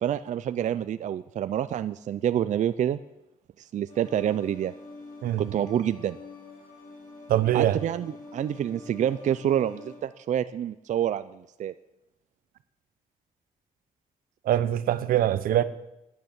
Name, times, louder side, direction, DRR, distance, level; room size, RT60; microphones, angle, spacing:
voice 1, 0.0-3.0 3.6-4.7 5.4-6.2 7.5-11.7, right 10 dB, 55° right, 0.4 m, -27 dB
sound 1, 3.9-10.0, left 3 dB, 75° left, 5.2 m, -46 dB
voice 2, 5.2-5.5 7.3-7.8 14.4-15.6, right 12 dB, 85° right, 0.7 m, -23 dB
10.5 x 9.5 x 7.3 m
cardioid pair, 110°, 14 cm